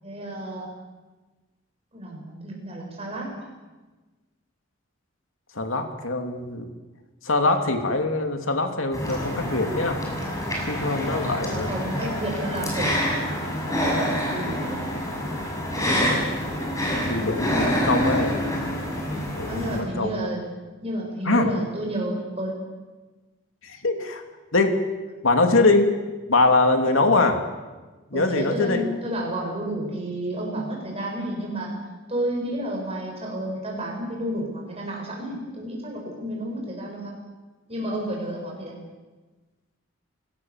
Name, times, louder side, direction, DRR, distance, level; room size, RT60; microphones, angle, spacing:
voice 1, 0.0-0.7 1.9-3.5 11.1-13.3 13.6-14.9 19.5-20.4 20.8-22.5 28.1-31.7 32.1-37.1 37.7-38.7, right 1 dB, 30° right, -1 dB, 7.4 m, -31 dB
voice 2, 5.5-6.7 7.2-10.0 10.7-12.1 17.1-18.4 19.4-20.1 21.3-21.5 23.6-24.2 24.5-24.8 25.2-25.9 26.3-27.4 28.1-28.8, left 3 dB, 85° left, 4 dB, 2.8 m, -23 dB
sound 1, 8.9-19.8, equal, 15° left, 6.6 m, -27 dB
29.0 x 18.5 x 7.4 m, 1.3 s
head